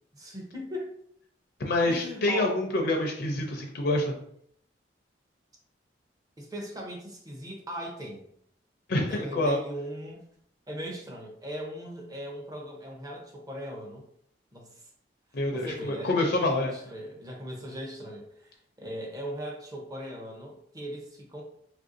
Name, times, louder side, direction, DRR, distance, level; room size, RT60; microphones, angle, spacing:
voice 1, 0.1-0.9 1.9-2.6 6.4-8.2 9.1-10.2 10.7-14.1 14.5-14.9 15.5-16.2 16.4-18.5 18.8-21.4, equal, 20° right, -1 dB, 0.6 m, -39 dB
voice 2, 1.6-4.1 8.9-9.6 15.3-16.7, left 2 dB, 60° left, 1 dB, 0.5 m, -26 dB
3.2 x 2.5 x 2.5 m, 0.68 s
head